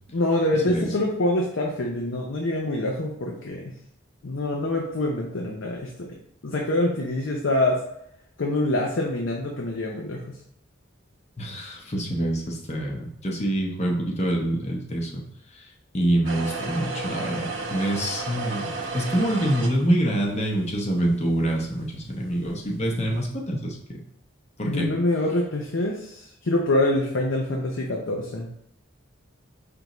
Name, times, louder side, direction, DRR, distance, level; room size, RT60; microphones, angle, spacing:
voice 1, 0.1-3.7 4.2-6.2 6.4-7.8 8.4-10.4 24.7-28.5, left 1 dB, 65° left, 0 dB, 0.6 m, -25 dB
voice 2, 11.4-15.3 15.5-15.7 15.9-24.0 24.6-24.9, right 1 dB, 30° left, -1 dB, 0.8 m, -26 dB
sound 1, 16.3-23.3, right 3 dB, 65° right, 0.7 m, -35 dB
5.2 x 3.4 x 3.0 m, 0.75 s
head